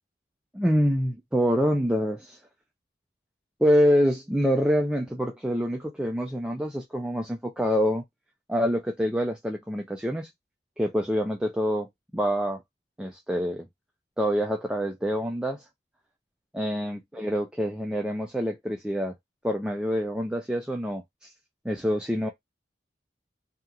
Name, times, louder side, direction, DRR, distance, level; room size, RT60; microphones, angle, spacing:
voice 1, 0.5-2.4 3.6-8.0 8.5-10.3 10.8-12.6 13.0-13.7 14.2-15.6 16.5-19.1 19.4-21.3 21.6-22.3, equal, 5° right, 0.3 m, -26 dB
2.8 x 2.4 x 2.3 m
head